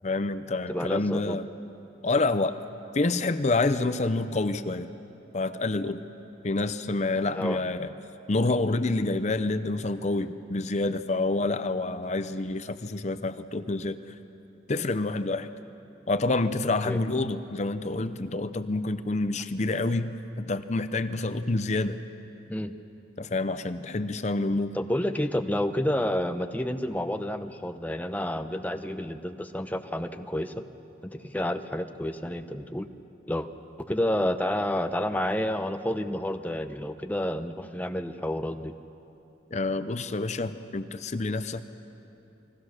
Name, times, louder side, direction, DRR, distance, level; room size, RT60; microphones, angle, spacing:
voice 1, 0.0-1.5 2.0-2.6 2.9-4.9 5.3-6.0 6.4-7.9 8.3-14.0 14.7-15.5 16.1-22.0 23.2-24.7 39.5-41.7, left 2 dB, 40° left, 11 dB, 0.6 m, -28 dB
voice 2, 0.7-1.4 7.3-7.6 16.8-17.0 22.5-22.7 24.7-30.6 31.0-32.9 33.3-33.5 33.8-38.7, left 1 dB, 10° left, 7 dB, 0.8 m, -29 dB
29.5 x 22.0 x 6.6 m, 2.9 s
head